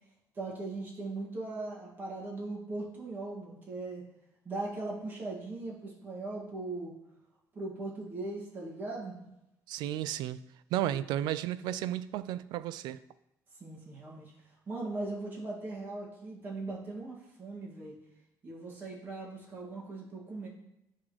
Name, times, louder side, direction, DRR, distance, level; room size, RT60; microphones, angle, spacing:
voice 1, 0.3-4.0 4.4-6.9 7.5-9.2 10.8-11.0 13.6-14.3 14.7-18.0 18.4-20.5, right 2 dB, 30° right, -4 dB, 2.1 m, -39 dB
voice 2, 9.7-10.4 10.7-13.0, right 12 dB, 80° right, 15 dB, 0.3 m, -33 dB
10.5 x 3.7 x 3.2 m, 0.87 s
cardioid pair, 150°, 7 cm